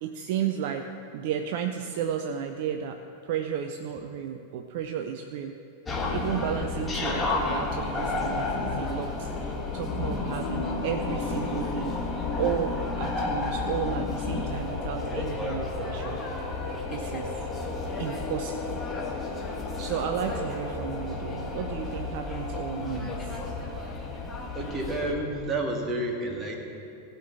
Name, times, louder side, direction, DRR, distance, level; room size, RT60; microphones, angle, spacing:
voice 1, 0.0-5.6 6.1-12.0 12.4-16.2 16.9-17.3 18.0-18.8 19.8-23.2, right 8 dB, 50° right, 6 dB, 0.5 m, -33 dB
sound 1, 5.9-25.1, left 3 dB, 15° left, 1.5 m, -31 dB
voice 2, 24.5-26.6, right 2 dB, 20° right, 1 dB, 1.7 m, -30 dB
16.0 x 5.6 x 7.1 m, 2.6 s
figure-of-eight pair, 90°, 0 cm